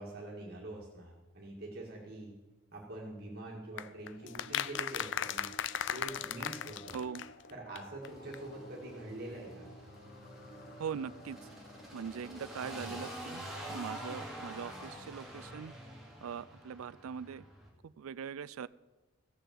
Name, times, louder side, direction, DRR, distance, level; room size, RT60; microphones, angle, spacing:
voice 1, 0.0-2.3 2.7-5.4 5.9-7.0 7.5-9.7 12.8-13.0, right 2 dB, 45° right, -3 dB, 2.2 m, -45 dB
sound 1, 3.8-7.5 7.8-7.9 8.0-8.1 8.3-8.4, left 9 dB, 60° left, 0.4 m, -37 dB
sound 2, 4.1-13.4, right 1 dB, 40° left, 1.2 m, -55 dB
voice 2, 6.9-7.3 10.7-11.5 11.9-15.7 16.2-17.4 17.8-18.7, right 7 dB, 85° right, 18 dB, 0.4 m, -41 dB
sound 3, 8.0-17.7, equal, ahead, 2.4 m, -47 dB
16.0 x 6.7 x 7.7 m, 1.1 s
head